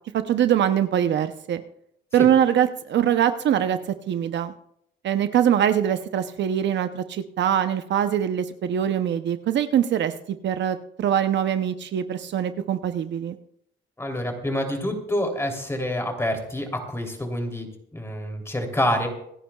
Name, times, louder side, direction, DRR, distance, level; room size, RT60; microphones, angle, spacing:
voice 1, 0.1-1.6 2.1-3.8 4.1-4.5 5.0-10.1 10.4-13.4, right 9 dB, 65° right, 10 dB, 0.7 m, -23 dB
voice 2, 14.0-17.7 17.9-19.1, left 1 dB, 15° left, 3 dB, 3.1 m, -27 dB
27.0 x 9.9 x 2.3 m, 0.74 s
cardioid pair, 90°, 20 cm